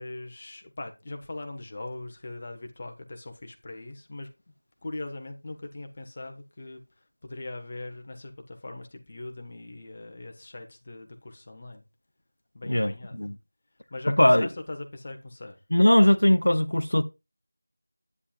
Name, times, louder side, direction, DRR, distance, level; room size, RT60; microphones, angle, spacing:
voice 1, 0.0-4.3 4.8-11.8 12.5-13.2 13.9-15.6, left 2 dB, 25° left, 1.3 m, -40 dB
voice 2, 12.7-13.3 14.2-14.5 15.7-17.0, left 1 dB, 70° left, 0.8 m, -20 dB
9.7 x 8.5 x 2.4 m
figure-of-eight pair, 175°, 0 cm